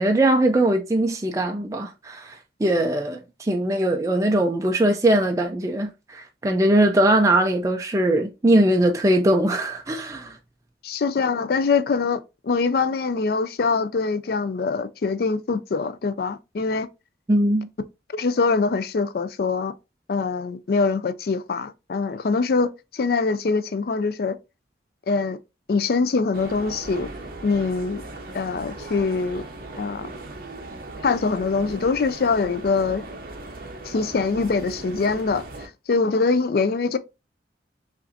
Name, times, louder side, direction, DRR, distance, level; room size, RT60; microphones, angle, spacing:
voice 1, 0.0-10.4 17.3-17.7, right 1 dB, 20° right, 0.4 m, -21 dB
voice 2, 10.8-16.9 18.1-19.7 20.1-24.4 25.1-25.4 25.7-27.1 27.4-28.0 28.3-29.4 29.8-30.1 31.0-33.0 33.8-35.4 35.9-37.0, left 4 dB, 55° left, 0.4 m, -23 dB
sound 1, 26.3-35.7, right 2 dB, 55° right, 0.8 m, -38 dB
5.7 x 2.5 x 2.5 m
head